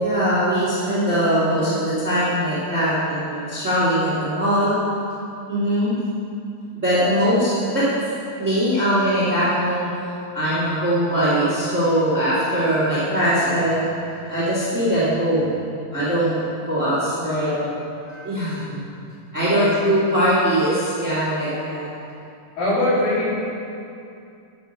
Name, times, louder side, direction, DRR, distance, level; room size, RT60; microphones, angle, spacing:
voice 1, 0.0-4.8 5.5-5.9 6.7-7.9 8.4-9.8 10.3-13.8 14.2-15.6 15.9-16.3 16.7-17.5 18.2-18.6 19.3-21.9, equal, 20° right, -9 dB, 2.6 m, -21 dB
voice 2, 1.0-2.1 7.0-7.2 17.2-17.7 18.0-18.8 19.5-19.7 22.6-23.3, left 1 dB, 60° left, -8 dB, 4.9 m, -26 dB
10.0 x 10.0 x 6.7 m, 2.6 s
omnidirectional pair, 4.6 m